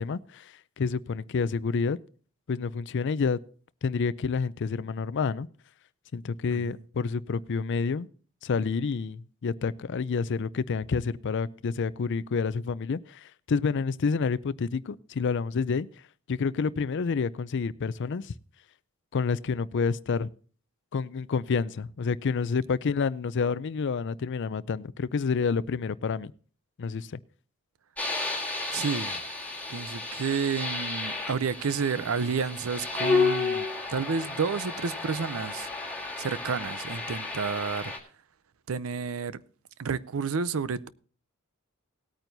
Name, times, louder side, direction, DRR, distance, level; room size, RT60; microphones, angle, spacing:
voice 1, 0.0-2.0 2.5-3.4 3.8-5.5 6.1-8.1 8.4-15.9 16.3-18.3 19.1-20.3 20.9-26.3 26.8-27.2, left 5 dB, 55° left, 0.4 m, -29 dB
sound 1, 28.0-38.0, left 4 dB, 5° left, 1.7 m, -32 dB
voice 2, 28.7-29.2 29.7-33.7 33.9-35.7 36.2-37.9 38.7-39.4 39.8-40.9, right 5 dB, 70° right, 0.5 m, -30 dB
18.5 x 8.9 x 2.7 m
head